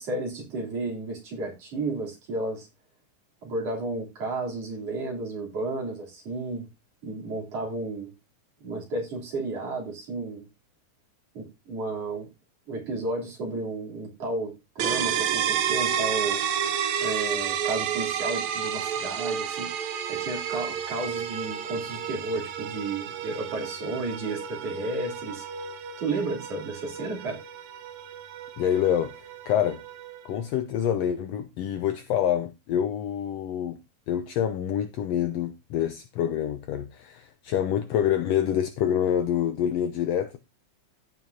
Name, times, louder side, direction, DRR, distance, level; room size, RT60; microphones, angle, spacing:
voice 1, 0.0-2.7 3.4-6.7 7.0-8.1 8.6-10.5 11.3-12.3 12.7-16.4 17.0-19.7 20.1-25.5 26.0-27.4, right 2 dB, 50° right, 4.3 m, -32 dB
sound 1, 14.8-30.4, right 8 dB, 70° right, 2.2 m, -31 dB
voice 2, 28.6-29.8 30.2-33.8 34.1-40.4, left 10 dB, 75° left, 1.5 m, -26 dB
15.5 x 5.8 x 2.7 m
omnidirectional pair, 3.7 m